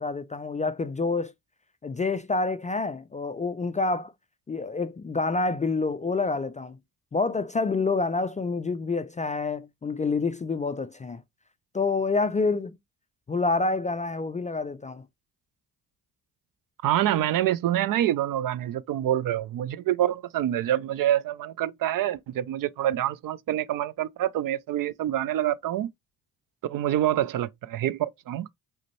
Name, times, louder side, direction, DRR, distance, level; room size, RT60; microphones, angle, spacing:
voice 1, 0.0-1.3 1.8-4.1 4.5-6.8 7.1-11.2 11.7-12.8 13.3-15.0, left 3 dB, 20° left, 0.3 m, -27 dB
voice 2, 16.8-25.9 26.6-28.5, right 12 dB, 55° right, 0.4 m, -26 dB
4.9 x 2.1 x 3.0 m
hypercardioid pair, 50°, 42 cm